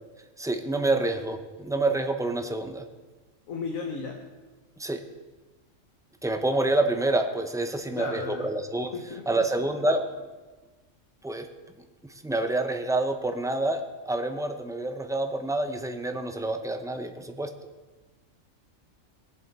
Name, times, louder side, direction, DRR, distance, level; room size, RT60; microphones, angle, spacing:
voice 1, 0.4-2.9 4.8-5.0 6.2-8.9 9.3-10.3 11.2-11.5 11.8-11.9 12.2-17.5, right 2 dB, 5° right, 6 dB, 0.4 m, -27 dB
voice 2, 3.5-4.2 7.8-8.5 8.9-9.2, left 4 dB, 85° left, 3 dB, 1.5 m, -34 dB
20.5 x 7.8 x 4.1 m, 1.2 s
omnidirectional pair, 1.4 m